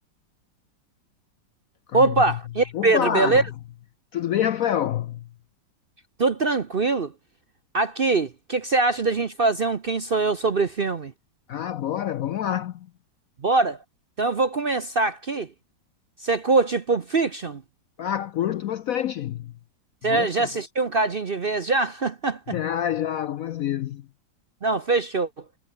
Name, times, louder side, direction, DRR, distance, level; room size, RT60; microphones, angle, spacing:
voice 1, 1.9-3.4 6.2-7.1 7.7-11.1 13.4-13.8 14.2-15.5 16.2-17.6 20.0-22.6 24.6-25.3, right 3 dB, 45° right, 0.8 m, -23 dB
voice 2, 2.7-3.4 4.1-5.2 11.5-12.9 18.0-19.5 20.0-20.5 22.5-24.0, left 10 dB, 70° left, 0.8 m, -27 dB
omnidirectional pair, 2.0 m